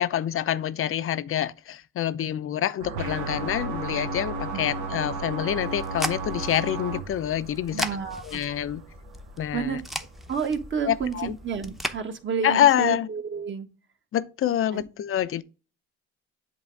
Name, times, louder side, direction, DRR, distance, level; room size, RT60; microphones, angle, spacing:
voice 1, 0.0-7.9 8.2-8.8 9.4-9.8 10.8-11.4 12.4-13.1 14.1-15.4, left 10 dB, 45° left, 0.6 m, -26 dB
sound 1, 2.8-12.4, right 4 dB, 90° right, 1.5 m, -44 dB
sound 2, 3.0-7.0, right 2 dB, 70° right, 1.0 m, -33 dB
sound 3, 5.5-12.0, equal, ahead, 0.8 m, -37 dB
voice 2, 7.7-8.4 9.5-9.8 10.3-13.7 14.7-14.8, right 6 dB, 40° right, 1.3 m, -30 dB
8.1 x 3.0 x 4.6 m
supercardioid pair, 85°, 31 cm